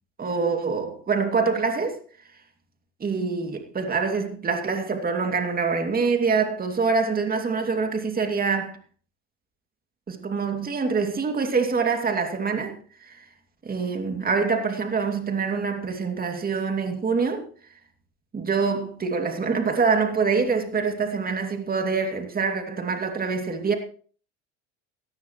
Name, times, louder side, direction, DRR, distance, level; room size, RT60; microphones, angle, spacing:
voice 1, 0.2-2.0 3.0-8.8 10.1-12.8 13.0-13.2 13.6-17.4 18.3-23.7, right 5 dB, 25° right, 2.6 m, -25 dB
17.5 x 14.0 x 3.1 m
supercardioid pair, 100°, 35 cm